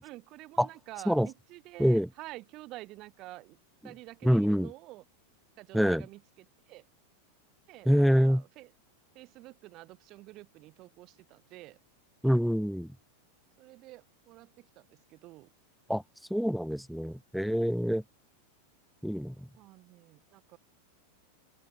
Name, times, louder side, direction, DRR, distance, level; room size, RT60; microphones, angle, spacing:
voice 1, 0.0-3.6 3.8-5.0 5.6-6.8 7.7-8.7 9.1-11.8 13.6-15.5 19.6-20.6, right 19 dB, 40° right, 5.4 m, -49 dB
voice 2, 4.2-4.7 5.7-6.0 7.9-8.4 12.2-12.9 15.9-16.0 16.3-18.0 19.0-19.5, equal, ahead, 0.8 m, -26 dB
open air
figure-of-eight pair, 90°, 0 cm